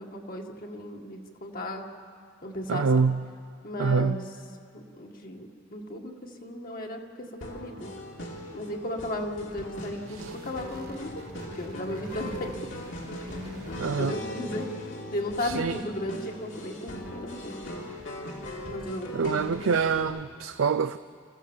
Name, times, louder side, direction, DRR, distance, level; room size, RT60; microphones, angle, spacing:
voice 1, 0.0-1.9 2.4-3.1 3.6-4.2 4.7-7.9 8.5-11.3 11.6-12.6 14.0-14.7 15.1-17.6 18.7-19.5, left 1 dB, 50° left, 1 dB, 2.0 m, -35 dB
voice 2, 2.7-3.3 3.8-4.2 10.1-10.4 13.8-14.2 15.4-15.8 19.1-21.0, right 5 dB, 90° right, 11 dB, 0.5 m, -26 dB
sound 1, 7.4-20.0, left 1 dB, 70° left, 3.5 m, -40 dB
sound 2, 9.7-14.9, equal, 50° right, 1.7 m, -45 dB
28.5 x 15.0 x 7.3 m, 2.2 s
head